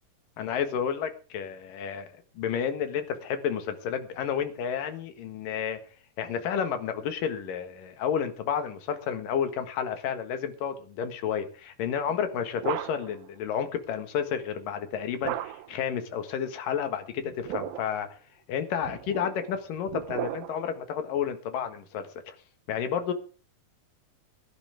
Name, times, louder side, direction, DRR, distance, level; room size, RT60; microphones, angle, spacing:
voice 1, 0.4-2.1 2.3-5.8 6.2-18.1 18.5-22.3 22.7-23.1, left 8 dB, 70° left, 8 dB, 3.2 m, -31 dB
sound 1, 12.1-13.3 15.2-15.9 17.2-18.0 18.8-20.8, right 13 dB, 90° right, 2.7 m, -36 dB
21.0 x 11.0 x 3.5 m, 0.36 s
omnidirectional pair, 4.1 m